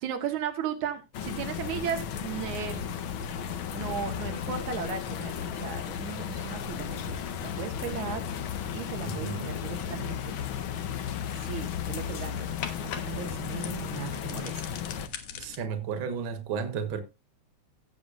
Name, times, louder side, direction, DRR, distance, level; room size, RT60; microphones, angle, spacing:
voice 1, 0.0-2.9 3.7-8.2 8.7-10.4 11.3-14.6, right 8 dB, 90° right, 2.8 m, -36 dB
sound 1, 1.1-15.1, left 8 dB, 65° left, 1.3 m, -34 dB
sound 2, 6.4-15.6, left 7 dB, 85° left, 2.7 m, -45 dB
voice 2, 9.0-9.6 15.4-17.0, right 6 dB, 50° right, 1.9 m, -33 dB
16.5 x 7.6 x 2.5 m
omnidirectional pair, 3.4 m